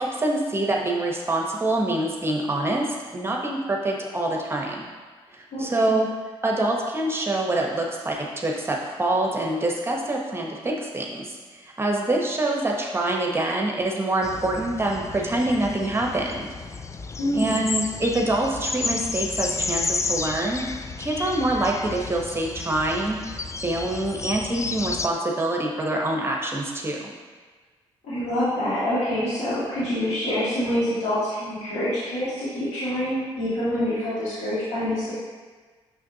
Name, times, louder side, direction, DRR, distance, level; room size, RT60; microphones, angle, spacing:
voice 1, 0.0-2.9 3.1-4.9 5.3-6.1 6.4-16.5 17.3-20.6 21.0-27.1, right 1 dB, 20° right, -1 dB, 0.9 m, -25 dB
voice 2, 5.5-5.9 17.2-17.6 28.0-35.1, left 1 dB, 90° left, -10 dB, 1.9 m, -26 dB
sound 1, 14.2-25.1, left 4 dB, 25° left, 0.4 m, -32 dB
6.4 x 6.1 x 2.7 m, 1.4 s
cardioid pair, 70°, 11 cm